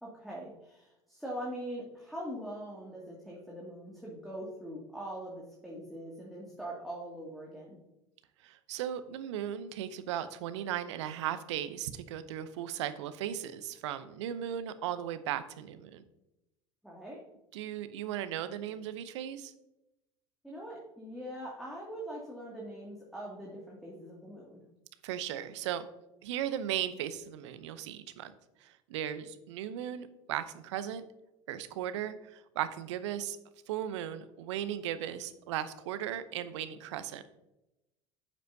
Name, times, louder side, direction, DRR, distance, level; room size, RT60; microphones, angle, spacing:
voice 1, 0.0-7.8 16.8-17.2 20.4-24.6, right 1 dB, ahead, -5 dB, 2.4 m, -42 dB
voice 2, 8.4-16.0 17.5-19.5 25.0-25.9 26.2-28.3 28.6-31.0 31.5-33.4 33.7-37.2, right 10 dB, 70° right, 13 dB, 0.7 m, -37 dB
9.8 x 7.4 x 2.7 m, 0.91 s
hypercardioid pair, 70°, 15 cm